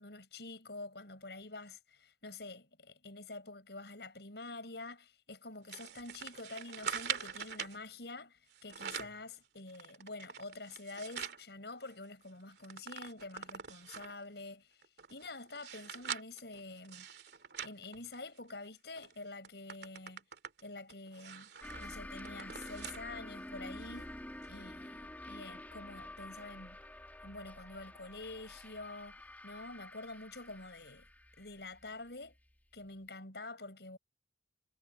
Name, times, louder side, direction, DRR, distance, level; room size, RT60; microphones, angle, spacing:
voice 1, 0.0-14.8 15.1-17.1 17.6-20.2 20.6-24.2 24.5-26.8 27.2-31.1 31.4-32.4 32.7-34.0, left 2 dB, 65° left, 7.6 m, -47 dB
sound 1, 5.7-7.8 8.5-9.2 9.7-11.4 11.9-12.0 12.2-14.2 14.8-18.6 19.0-19.1 19.4-23.1 23.5-23.6 24.4-24.5, right 7 dB, 65° right, 2.8 m, -44 dB
sound 2, 21.6-32.8, left 1 dB, 10° left, 2.4 m, -49 dB
head